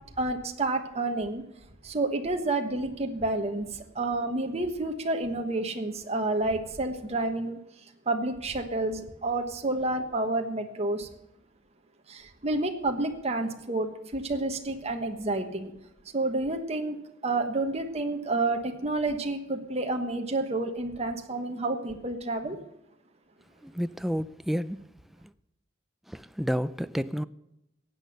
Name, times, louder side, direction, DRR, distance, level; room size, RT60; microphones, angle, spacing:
voice 1, 0.2-1.4 1.8-7.6 8.1-11.1 12.1-15.7 16.1-17.0 17.2-22.6, right 2 dB, 35° right, 1.3 m, -29 dB
voice 2, 23.6-24.9 26.1-27.2, equal, ahead, 0.4 m, -30 dB
15.5 x 8.9 x 6.6 m
head